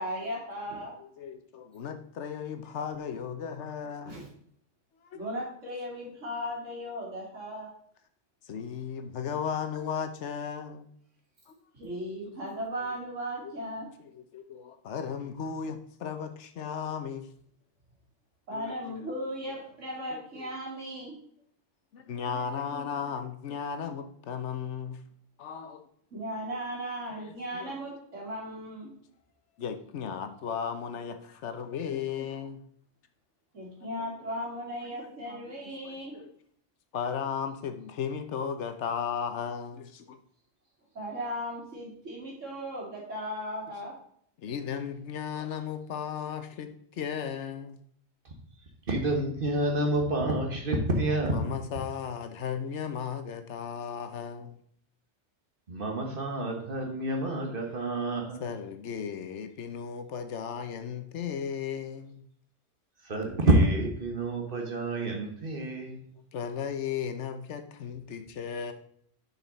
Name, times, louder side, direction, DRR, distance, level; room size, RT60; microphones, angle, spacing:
voice 1, 0.0-0.9 4.0-4.3 5.1-7.7 11.7-13.9 18.5-21.1 26.1-28.9 33.5-36.2 40.9-43.9, equal, 85° right, -3 dB, 3.0 m, -37 dB
voice 2, 1.0-4.2 5.0-5.2 8.5-10.9 11.5-11.6 12.4-12.6 13.4-13.5 14.0-17.3 18.5-19.0 19.4-19.5 20.1-20.5 21.9-25.0 25.4-25.8 27.1-27.7 29.6-32.6 34.8-35.5 35.8-36.3 36.9-40.2 44.4-47.8 51.3-54.6 58.4-62.2 66.3-68.7, left 7 dB, 70° left, 8 dB, 1.1 m, -36 dB
voice 3, 48.9-51.6 55.7-58.4 63.0-66.1, right 1 dB, 45° right, 3 dB, 1.5 m, -28 dB
7.3 x 5.9 x 4.0 m, 0.63 s
omnidirectional pair, 1.2 m